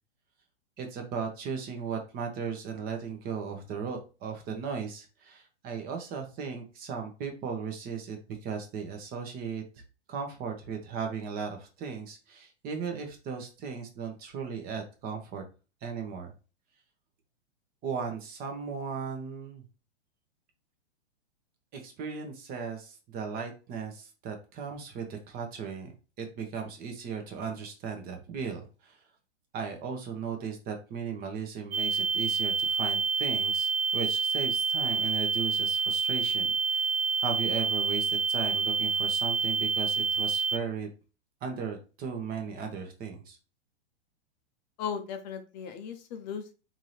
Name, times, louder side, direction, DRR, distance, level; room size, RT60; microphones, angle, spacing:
voice 1, 0.8-9.6 10.1-15.4 15.8-16.3 17.8-19.6 21.7-25.9 26.2-29.0 29.5-36.9 37.2-40.9 41.4-43.4, right 6 dB, 25° right, 4 dB, 0.9 m, -36 dB
sound 1, 31.7-40.6, right 5 dB, 65° right, 0.6 m, -28 dB
voice 2, 44.8-46.6, left 7 dB, 40° left, 8 dB, 0.6 m, -37 dB
3.7 x 2.8 x 3.1 m, 0.32 s
hypercardioid pair, 115°, 33 cm